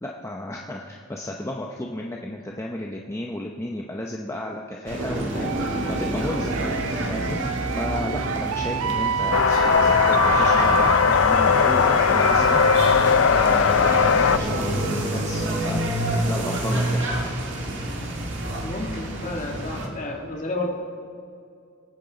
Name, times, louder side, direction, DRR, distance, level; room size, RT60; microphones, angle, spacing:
voice 1, 0.0-6.8 7.1-17.0, left 1 dB, 15° left, 0 dB, 0.6 m, -33 dB
sound 1, 4.9-19.9, right 1 dB, 55° right, 1.9 m, -28 dB
sound 2, 5.4-15.0, right 8 dB, 80° right, 0.3 m, -29 dB
sound 3, 9.3-14.4, left 6 dB, 60° left, 0.4 m, -19 dB
voice 2, 18.6-20.7, left 2 dB, 35° left, 0 dB, 1.7 m, -31 dB
23.5 x 9.2 x 3.9 m, 2.3 s
head